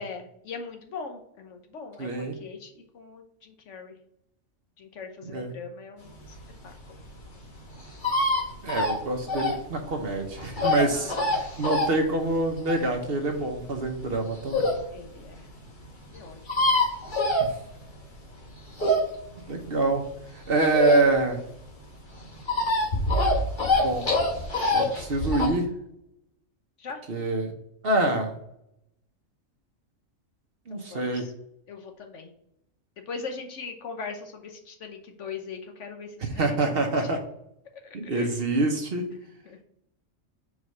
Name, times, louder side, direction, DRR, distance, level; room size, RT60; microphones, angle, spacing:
voice 1, 0.0-3.9 4.8-6.2 6.6-7.0 10.9-11.4 14.9-15.5 16.1-16.6 26.8-27.0 30.7-31.3 31.7-32.3 33.1-37.1 37.8-38.4 39.4-39.6, left 5 dB, 70° left, 5 dB, 1.3 m, -40 dB
voice 2, 2.0-2.3 5.3-5.5 8.6-14.6 19.5-20.1 20.5-21.4 23.8-24.1 24.7-25.7 27.1-27.5 27.8-28.3 30.7-31.3 36.2-37.2 37.9-39.0, right 2 dB, 50° right, 4 dB, 1.1 m, -26 dB
sound 1, 6.2-14.9 15.3-15.4 15.6-15.7 15.9-16.0 16.2-18.0 18.4-21.4 21.7-25.5, left 1 dB, 40° left, 1.4 m, -25 dB
4.9 x 4.7 x 5.4 m, 0.76 s
omnidirectional pair, 1.3 m